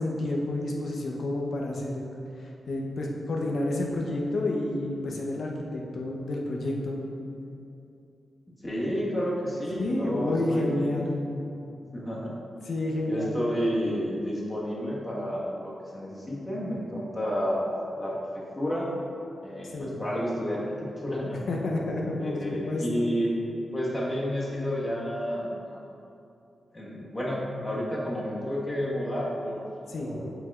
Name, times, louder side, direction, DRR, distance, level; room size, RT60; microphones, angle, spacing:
voice 1, 0.0-2.0 2.4-7.0 9.8-11.2 12.6-13.4 19.7-20.0 21.5-23.1 29.9-30.2, left 1 dB, 70° left, 0 dB, 0.8 m, -29 dB
voice 2, 8.6-10.9 11.9-12.4 13.0-18.9 19.4-21.4 22.2-25.9 26.7-29.7 30.0-30.3, equal, 25° left, -5 dB, 1.5 m, -31 dB
7.5 x 5.0 x 2.5 m, 2.7 s
cardioid pair, 60°, 0 cm